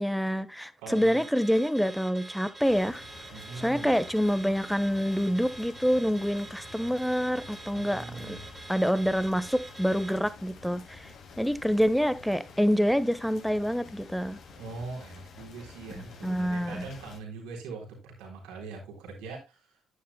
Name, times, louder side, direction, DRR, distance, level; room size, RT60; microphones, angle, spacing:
voice 1, 0.0-3.0 3.6-8.3 8.7-11.1 11.4-14.4 16.0-16.8, equal, ahead, 1.3 m, -27 dB
voice 2, 0.8-1.2 3.3-4.0 7.7-8.5 14.6-19.6, right 3 dB, 75° right, 3.7 m, -41 dB
Car / Alarm, 0.9-10.2, right 3 dB, 25° right, 2.9 m, -46 dB
sound 1, 2.6-17.2, left 4 dB, 60° left, 2.6 m, -49 dB
10.0 x 9.9 x 2.3 m
hypercardioid pair, 45°, 0 cm